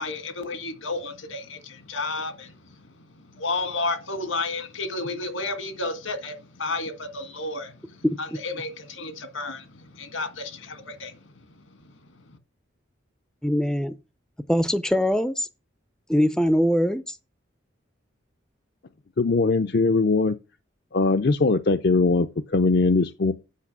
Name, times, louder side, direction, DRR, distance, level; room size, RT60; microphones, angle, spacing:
voice 1, 0.0-12.4, left 3 dB, 80° left, 1.7 m, -32 dB
voice 2, 13.4-13.9 14.5-15.5 16.1-17.2, equal, 5° left, 0.5 m, -22 dB
voice 3, 19.2-20.4 20.9-23.3, left 3 dB, 55° left, 0.5 m, -21 dB
8.4 x 5.9 x 6.0 m
head